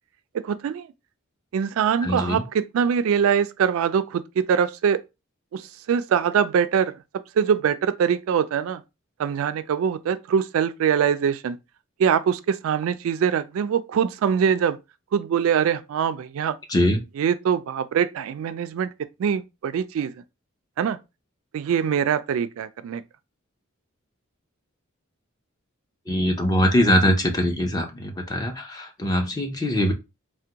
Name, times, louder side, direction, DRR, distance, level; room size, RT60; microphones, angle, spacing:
voice 1, 0.4-0.9 1.5-5.0 5.5-5.6 5.9-6.9 7.4-8.8 9.2-11.6 12.0-14.8 15.1-16.5 17.2-18.9 19.2-20.1 20.8-21.0 21.5-23.0, right 7 dB, 70° right, 0.3 m, -23 dB
voice 2, 2.0-2.4 16.7-17.0 26.1-29.9, equal, 20° left, 0.6 m, -22 dB
3.4 x 2.2 x 2.7 m
head